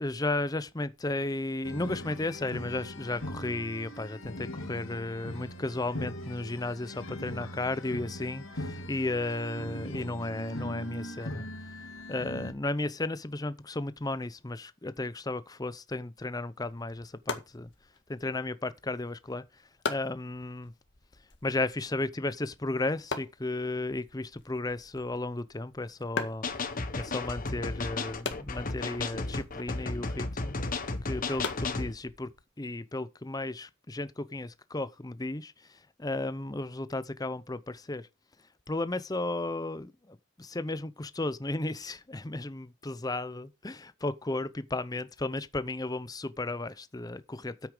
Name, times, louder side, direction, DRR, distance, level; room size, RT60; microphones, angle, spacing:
voice 1, 0.0-11.5 12.1-17.7 18.1-19.6 19.9-20.7 21.4-26.5 27.0-30.6 31.1-32.3 32.6-38.1 38.7-47.7, left 2 dB, 20° left, 0.6 m, -34 dB
sound 1, 1.6-12.5, left 1 dB, 70° left, 2.1 m, -40 dB
sound 2, 16.6-32.4, left 4 dB, 55° left, 1.9 m, -43 dB
sound 3, 26.4-31.9, left 3 dB, 40° left, 1.2 m, -34 dB
9.5 x 8.4 x 5.0 m
head